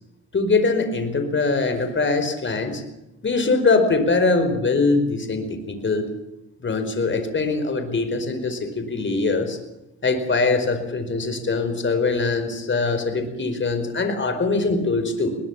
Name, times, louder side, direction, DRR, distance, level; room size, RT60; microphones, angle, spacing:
voice 1, 0.3-2.8 3.2-6.1 6.6-9.6 10.0-15.4, left 3 dB, 40° left, 9 dB, 4.8 m, -22 dB
21.5 x 20.0 x 7.3 m, 0.94 s
cardioid pair, 85°, 31 cm